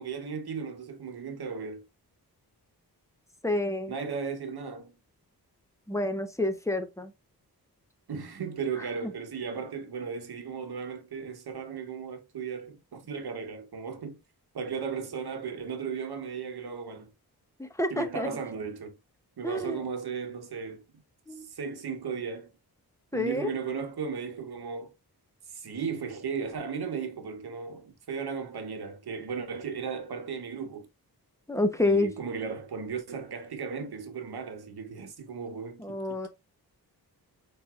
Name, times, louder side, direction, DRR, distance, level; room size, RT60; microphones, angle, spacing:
voice 1, 0.0-1.8 3.9-5.0 8.1-14.2 14.5-17.1 17.9-18.9 19.4-20.8 21.3-22.5 23.1-24.9 25.5-30.9 31.8-36.3, right 6 dB, 75° right, 1.0 m, -36 dB
voice 2, 3.4-3.9 5.9-7.1 8.8-9.1 17.6-18.3 19.4-19.8 21.3-21.5 23.1-23.5 31.5-32.1 35.8-36.3, left 2 dB, 10° left, 0.8 m, -29 dB
4.8 x 4.4 x 2.4 m
wide cardioid pair, 120°, 39 cm